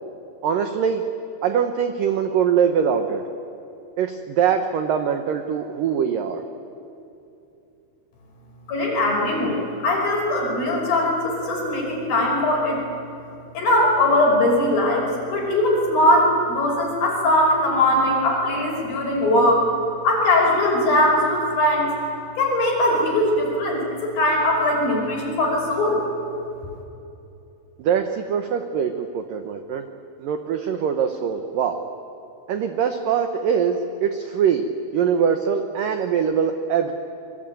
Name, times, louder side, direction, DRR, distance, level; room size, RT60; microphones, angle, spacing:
voice 1, 0.4-1.0 1.4-3.2 4.0-6.4 27.8-29.9 30.2-31.8 32.5-34.7 34.9-36.9, right 7 dB, 80° right, 6 dB, 1.9 m, -22 dB
voice 2, 8.7-12.8 13.5-19.7 20.0-21.9 22.4-26.0, left 1 dB, 50° left, -1 dB, 7.2 m, -20 dB
27.5 x 23.0 x 9.2 m, 2.8 s
omnidirectional pair, 5.6 m